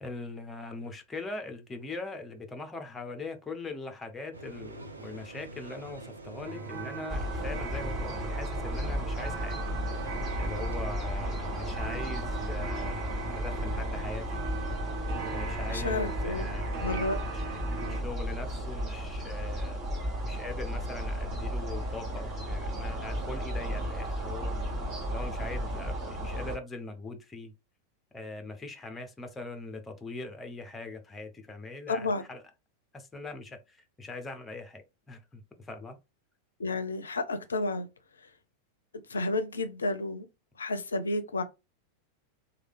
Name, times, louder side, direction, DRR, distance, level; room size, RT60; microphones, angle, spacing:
voice 1, 0.0-9.6 10.4-14.4 15.3-17.0 17.3-19.8 20.2-24.6 25.1-27.5 28.1-32.4 32.9-36.0, left 3 dB, 15° left, 0.7 m, -41 dB
sound 1, 4.3-10.8, right 3 dB, 75° right, 0.6 m, -46 dB
sound 2, 6.4-18.0, right 4 dB, 40° right, 1.0 m, -40 dB
sound 3, 7.1-26.6, equal, 25° right, 1.7 m, -34 dB
voice 2, 15.7-16.4 16.8-17.2 31.9-32.2 36.6-37.9 39.1-40.3 40.6-41.4, left 2 dB, 70° left, 0.5 m, -31 dB
3.2 x 2.3 x 3.4 m
figure-of-eight pair, 90°, 0 cm